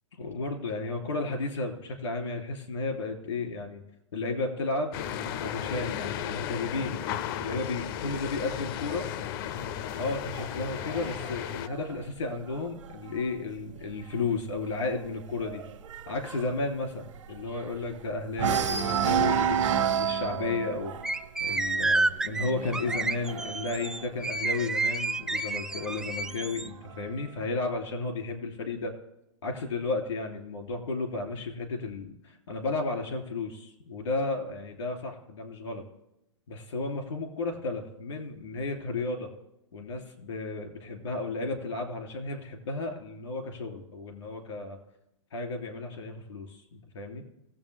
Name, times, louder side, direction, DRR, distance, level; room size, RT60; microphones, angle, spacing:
voice 1, 0.2-3.8 4.1-7.0 7.4-9.1 10.0-15.6 16.1-20.9 21.4-28.9 29.4-35.8 36.5-39.3 39.7-44.8 45.3-47.2, left 3 dB, 80° left, 3 dB, 3.1 m, -33 dB
sound 1, 4.9-11.7, left 10 dB, 45° left, 0.5 m, -35 dB
sound 2, 9.6-13.2 13.6-13.9 14.2-14.3 14.7-18.0 18.3-24.9 25.7-26.7, right 8 dB, 85° right, 1.2 m, -31 dB
sound 3, 21.0-26.7, right 3 dB, 5° right, 0.4 m, -30 dB
20.5 x 7.6 x 3.5 m, 0.85 s
hypercardioid pair, 120°, 15 cm